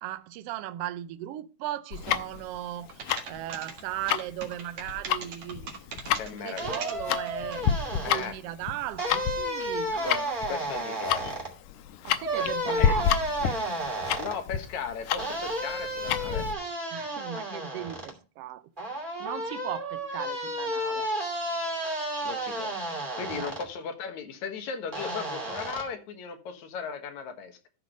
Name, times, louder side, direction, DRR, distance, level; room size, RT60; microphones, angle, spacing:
voice 1, 0.0-5.9 6.4-7.7 7.9-10.4 11.2-11.3 12.0-13.1 16.9-18.7 19.2-21.1 23.3-23.5, right 13 dB, 85° right, 1.4 m, -37 dB
Tick-tock, 1.9-16.5, left 9 dB, 90° left, 2.2 m, -30 dB
sound 1, 2.9-7.7, right 5 dB, 55° right, 2.6 m, -40 dB
voice 2, 6.2-6.8 8.0-8.4 10.0-10.2 10.5-11.4 12.4-13.0 14.2-16.5 22.2-22.7 23.2-27.7, left 6 dB, 70° left, 2.8 m, -36 dB
sound 2, 6.6-8.3 9.0-11.5 12.2-14.4 15.2-18.1 18.8-23.7 24.9-25.8, right 1 dB, 15° right, 2.6 m, -32 dB
13.5 x 4.9 x 5.2 m
omnidirectional pair, 3.5 m